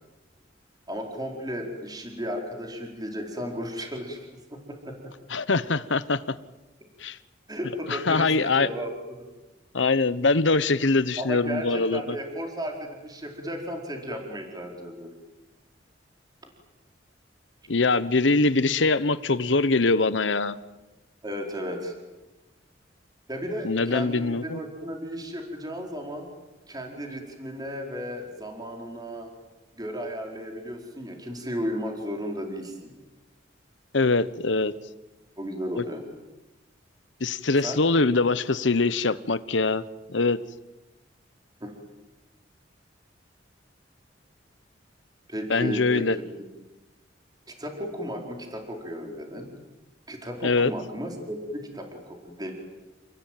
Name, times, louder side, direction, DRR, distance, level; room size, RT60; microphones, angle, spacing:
voice 1, 0.9-4.2 4.5-5.0 7.5-8.9 11.2-15.1 21.2-21.9 23.3-26.3 26.7-29.3 29.8-32.9 35.4-36.0 37.6-37.8 41.6-41.7 45.3-46.1 47.5-49.5 50.1-52.5, equal, 20° right, 1 dB, 4.6 m, -34 dB
voice 2, 5.3-6.2 7.0-7.2 7.9-8.7 9.7-12.2 17.7-20.5 23.6-24.6 33.9-34.7 35.8-35.9 37.2-39.8 40.1-40.4 45.5-46.2 50.4-50.7, left 3 dB, 75° left, 15 dB, 1.1 m, -23 dB
29.5 x 20.0 x 9.2 m, 1.1 s
head